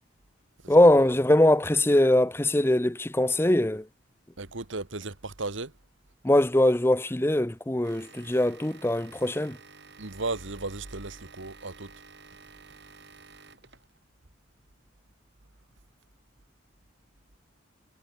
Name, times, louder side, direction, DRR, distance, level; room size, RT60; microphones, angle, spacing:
voice 1, 0.7-3.8 6.2-9.6, left 1 dB, 10° left, 0.6 m, -22 dB
voice 2, 4.4-5.7 10.0-11.9, right 3 dB, 75° right, 2.0 m, -35 dB
sound 1, 7.8-14.0, right 4 dB, 55° right, 5.2 m, -52 dB
head